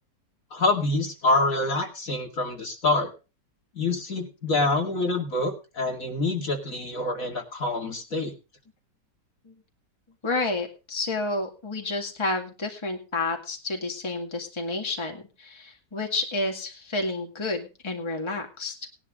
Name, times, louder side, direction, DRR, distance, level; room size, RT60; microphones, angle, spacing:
voice 1, 0.5-3.1 3.8-8.3, left 2 dB, 50° left, 2 dB, 2.7 m, -26 dB
voice 2, 10.2-18.9, left 2 dB, 15° left, 2 dB, 2.1 m, -30 dB
19.5 x 11.5 x 2.5 m, 0.31 s
omnidirectional pair, 1.9 m